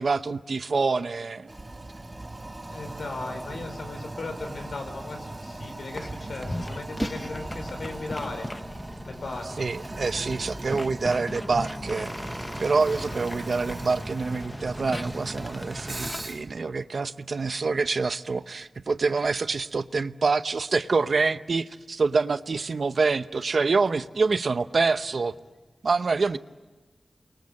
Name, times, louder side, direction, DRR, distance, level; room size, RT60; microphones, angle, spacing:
voice 1, 0.0-1.5 6.4-6.5 9.6-12.1 12.6-25.3 25.8-26.4, right 4 dB, 65° right, 12 dB, 0.8 m, -26 dB
Toilet flush, 1.5-16.5, right 2 dB, 25° right, 2.1 m, -38 dB
voice 2, 2.7-8.5 9.1-9.7, left 3 dB, 80° left, 6 dB, 5.0 m, -37 dB
sound 1, 6.0-6.1 6.4-16.2, left 1 dB, 20° left, 0.9 m, -38 dB
30.0 x 23.0 x 8.7 m, 1.2 s
wide cardioid pair, 110°, 0 cm